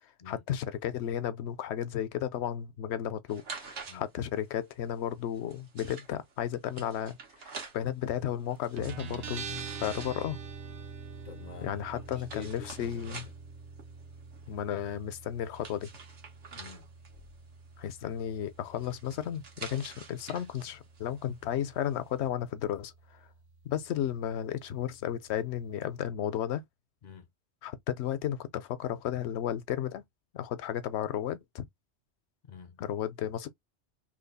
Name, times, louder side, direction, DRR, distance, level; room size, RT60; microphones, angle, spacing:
voice 1, 0.3-10.4 11.6-13.2 14.5-15.9 17.8-22.9 23.6-26.6 27.6-30.0 30.3-31.6 32.8-33.5, left 10 dB, 75° left, 0.9 m, -34 dB
sound 1, 3.3-22.2, right 5 dB, 90° right, 1.3 m, -49 dB
Guitar, 8.8-26.0, right 5 dB, 70° right, 0.8 m, -46 dB
voice 2, 11.2-13.3 16.5-16.9 27.0-27.3 32.4-32.8, left 7 dB, 55° left, 0.5 m, -47 dB
3.1 x 2.3 x 3.9 m
omnidirectional pair, 1.1 m